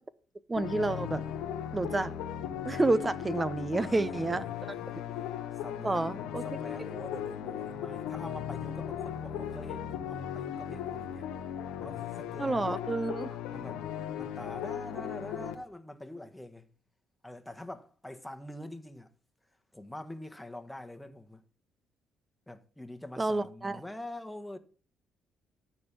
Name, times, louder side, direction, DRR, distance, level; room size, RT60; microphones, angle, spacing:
sound 1, 0.5-15.5, left 9 dB, 90° left, 1.1 m, -37 dB
voice 1, 0.5-1.2 1.7-2.1 2.6-4.4 5.8-6.4 6.8-6.9 12.4-13.4 23.2-23.8, right 2 dB, 25° right, 0.7 m, -29 dB
voice 2, 3.7-5.3 5.6-6.2 6.4-11.3 11.8-12.8 13.5-13.8 14.2-16.7 17.2-19.1 19.7-21.4 22.5-24.6, left 1 dB, 10° left, 1.4 m, -45 dB
13.0 x 4.4 x 7.0 m
supercardioid pair, 70°, 0 cm